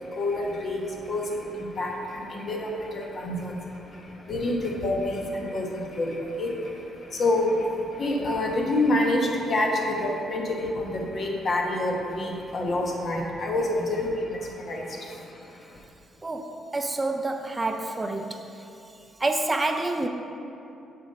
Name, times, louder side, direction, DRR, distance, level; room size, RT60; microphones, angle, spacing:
voice 1, 0.0-15.7, left 1 dB, 50° left, 0 dB, 1.1 m, -28 dB
voice 2, 16.2-18.4 19.2-20.1, right 2 dB, 20° right, 5 dB, 0.4 m, -28 dB
6.9 x 4.3 x 5.4 m, 2.8 s
cardioid pair, 90°, 0 cm